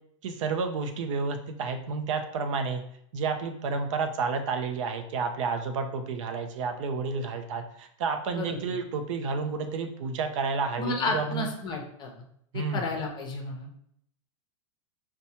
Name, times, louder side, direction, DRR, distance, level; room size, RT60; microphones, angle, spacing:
voice 1, 0.2-2.8 3.1-11.5 12.5-12.8, right 4 dB, 70° right, 6 dB, 0.5 m, -30 dB
voice 2, 8.3-8.8 10.8-12.1 12.5-13.7, left 3 dB, 25° left, 2 dB, 0.7 m, -32 dB
4.3 x 2.2 x 2.8 m, 0.69 s
hypercardioid pair, 130°, 17 cm